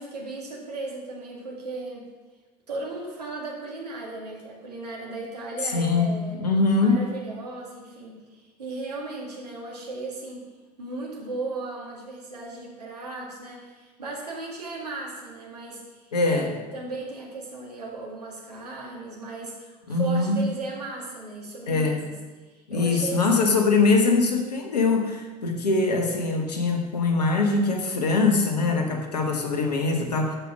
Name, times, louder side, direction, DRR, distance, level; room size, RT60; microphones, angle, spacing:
voice 1, 0.0-2.1 2.7-6.4 6.8-10.5 10.8-22.2 22.5-23.6, right 2 dB, 85° right, -2 dB, 2.2 m, -36 dB
voice 2, 5.6-7.1 16.1-16.5 19.9-20.4 21.7-22.0 22.7-30.4, left 3 dB, 80° left, 4 dB, 1.4 m, -23 dB
13.0 x 5.6 x 6.0 m, 1.2 s
figure-of-eight pair, 65°, 20 cm